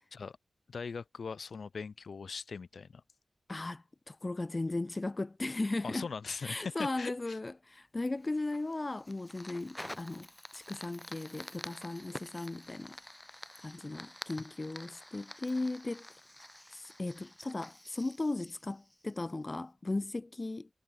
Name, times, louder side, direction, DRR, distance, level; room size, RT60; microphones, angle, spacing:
voice 1, 0.7-3.0 5.8-7.4, left 5 dB, 60° left, 7.9 m, -40 dB
voice 2, 3.5-6.1 6.4-10.3 10.5-13.0 13.6-16.1 16.7-20.7, left 2 dB, 25° left, 1.6 m, -37 dB
Fire, 8.1-19.4, left 1 dB, 5° left, 4.4 m, -49 dB
wide cardioid pair, 95°, 0 cm